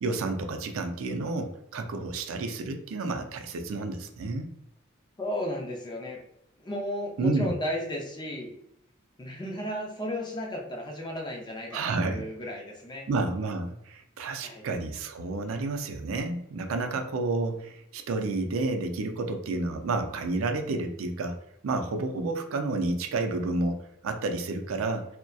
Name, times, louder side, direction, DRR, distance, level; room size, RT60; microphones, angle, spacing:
voice 1, 0.0-4.5 7.2-7.5 11.7-12.2 13.1-21.4 21.6-25.1, right 3 dB, 75° right, 6 dB, 0.4 m, -30 dB
voice 2, 5.2-6.2 6.6-8.5 9.2-13.1 14.4-14.6, left 1 dB, 20° left, 0 dB, 0.5 m, -34 dB
2.7 x 2.1 x 2.2 m, 0.79 s
head